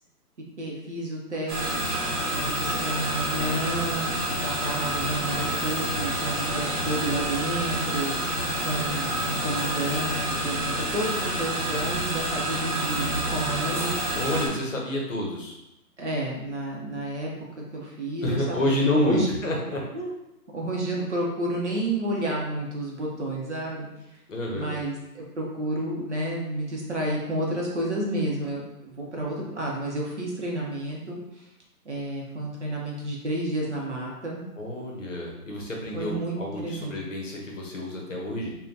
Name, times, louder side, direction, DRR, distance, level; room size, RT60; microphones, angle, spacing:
voice 1, 0.6-1.8 2.3-4.1 4.4-8.1 8.6-13.9 16.0-17.3 17.7-19.3 19.9-20.1 20.5-23.9 24.5-31.2 31.9-34.4 35.9-36.9, right 1 dB, 50° right, -3 dB, 0.7 m, -30 dB
sound 1, 1.5-14.5, right 1 dB, 65° right, 1.0 m, -28 dB
voice 2, 14.1-15.6 18.2-19.8 24.3-24.8 34.6-38.5, left 1 dB, 55° left, -1 dB, 0.7 m, -29 dB
3.5 x 2.2 x 2.5 m, 0.92 s
hypercardioid pair, 175°, 47 cm